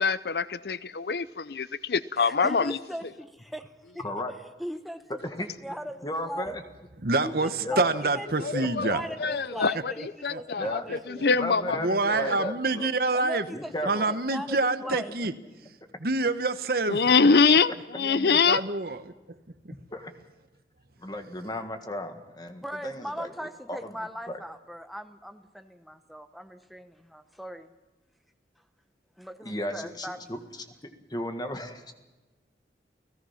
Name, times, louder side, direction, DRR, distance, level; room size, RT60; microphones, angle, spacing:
voice 1, 0.0-2.8 8.4-8.9 9.2-9.9 10.2-10.8 11.2-11.8 12.3-12.4 16.9-18.6, left 5 dB, 65° left, 0.6 m, -24 dB
voice 2, 2.2-4.0 4.6-5.0 5.4-6.6 7.2-8.3 8.9-11.3 13.1-13.7 14.3-15.1 22.6-27.7 29.2-30.3, equal, ahead, 1.1 m, -39 dB
voice 3, 5.1-5.8 6.0-6.6 7.6-8.0 8.5-9.3 10.6-10.9 11.3-12.9 13.5-14.1 19.9-20.1 21.0-24.0 24.3-24.4 29.4-30.4 30.8-31.9, left 1 dB, 25° left, 1.7 m, -35 dB
voice 4, 7.0-9.0 10.3-11.0 11.8-13.4 13.9-15.3 16.0-17.0 18.0-19.1 19.6-19.7, right 3 dB, 55° right, 1.1 m, -27 dB
29.5 x 17.0 x 5.8 m
head